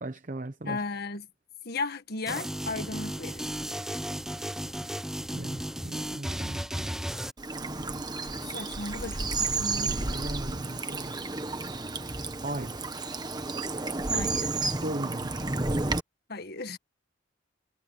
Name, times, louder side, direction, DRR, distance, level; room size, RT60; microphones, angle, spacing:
voice 1, 0.0-0.8 5.1-7.2 9.7-11.3 12.4-12.7 14.8-15.4, right 1 dB, 40° right, 0.9 m, -38 dB
voice 2, 0.6-1.3 1.6-3.5 8.2-10.3 14.1-14.5 16.3-16.8, left 3 dB, 50° left, 1.7 m, -36 dB
sound 1, 2.3-7.3, equal, ahead, 0.7 m, -34 dB
Bird vocalization bird call bird song / Stream, 7.4-16.0, right 3 dB, 20° right, 1.3 m, -31 dB
head